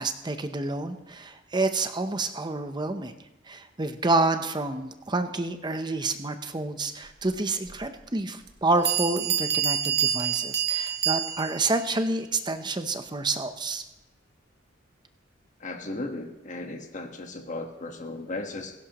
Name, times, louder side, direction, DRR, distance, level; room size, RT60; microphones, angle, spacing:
voice 1, 0.0-3.1 3.5-13.8, right 2 dB, 25° right, 8 dB, 0.7 m, -28 dB
Bell, 7.7-7.8 8.5-8.6 8.9-11.7, right 9 dB, 55° right, 1.3 m, -27 dB
voice 2, 15.6-18.7, left 2 dB, 40° left, 5 dB, 1.4 m, -36 dB
17.5 x 16.0 x 3.0 m, 0.96 s
head